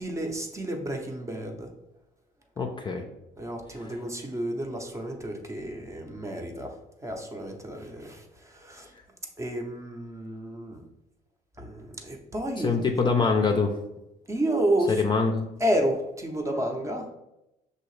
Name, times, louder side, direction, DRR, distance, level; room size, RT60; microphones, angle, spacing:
voice 1, 0.0-1.7 3.4-6.7 7.0-8.9 9.4-10.8 11.6-12.9 14.3-15.0 15.6-17.1, right 1 dB, 15° right, 2 dB, 0.7 m, -30 dB
voice 2, 2.6-3.0 12.6-13.7 15.0-15.4, left 4 dB, 25° left, 3 dB, 0.5 m, -24 dB
6.1 x 2.8 x 3.1 m, 0.90 s
cardioid pair, 110°, 17 cm